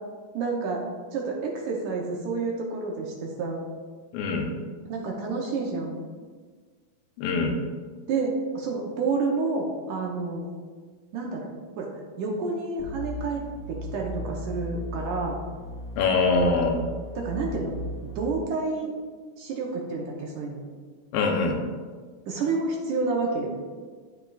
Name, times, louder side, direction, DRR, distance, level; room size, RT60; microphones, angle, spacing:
voice 1, 0.3-0.8 1.1-3.6 4.9-6.0 8.1-10.4 11.1-11.5 11.8-11.9 12.2-13.4 13.7-15.4 17.2-17.7 18.0-18.9 19.4-20.6 22.3-23.5, right 3 dB, 75° right, -1 dB, 2.0 m, -29 dB
voice 2, 4.1-4.5 7.2-7.6 16.0-16.8 21.1-21.6, left 3 dB, 85° left, 2 dB, 2.6 m, -23 dB
sound 1, 12.8-18.3, equal, 50° right, 0.6 m, -37 dB
13.0 x 4.4 x 2.4 m, 1.5 s
omnidirectional pair, 4.2 m